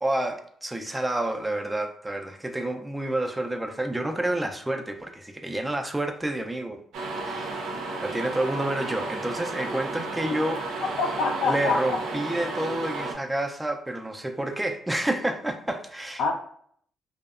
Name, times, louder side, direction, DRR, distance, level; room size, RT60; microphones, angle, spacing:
voice 1, 0.0-6.8 7.2-7.6 8.0-10.6 11.4-16.2, right 1 dB, 10° right, 4 dB, 0.3 m, -29 dB
sound 1, 6.9-13.1, right 3 dB, 85° right, 0.5 m, -33 dB
voice 2, 11.0-12.0 16.2-16.3, left 4 dB, 80° left, 3 dB, 0.4 m, -25 dB
2.7 x 2.0 x 2.3 m, 0.62 s
cardioid pair, 90°, 0 cm